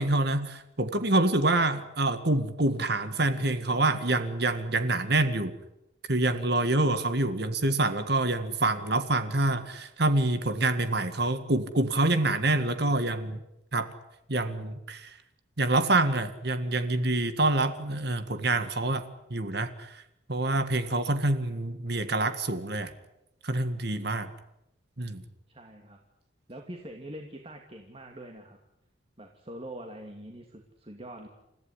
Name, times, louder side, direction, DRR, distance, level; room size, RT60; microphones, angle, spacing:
voice 1, 0.0-5.5 6.1-13.4 13.7-13.9 14.3-15.2 15.6-19.0 19.3-20.0 20.3-22.9 23.4-24.3 25.0-25.2, right 2 dB, 55° right, 10 dB, 1.8 m, -26 dB
voice 2, 25.5-26.0 26.5-28.6 29.2-31.3, right 1 dB, 30° right, 3 dB, 2.5 m, -44 dB
29.5 x 15.0 x 10.0 m, 0.86 s
head